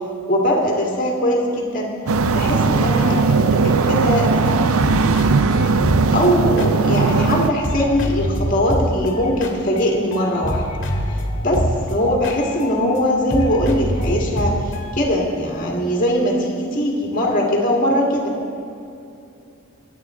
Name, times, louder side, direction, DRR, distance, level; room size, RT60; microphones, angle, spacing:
voice 1, 0.3-1.9 2.3-5.1 6.1-10.6 11.1-18.3, equal, 40° left, -1 dB, 2.2 m, -21 dB
sound 1, 2.1-7.5, right 4 dB, 75° right, 0.6 m, -18 dB
sound 2, 4.5-4.6 4.8-7.4 7.6-13.0 13.3-14.9, equal, 55° left, 2.0 m, -25 dB
25.0 x 8.7 x 3.8 m, 2.7 s
head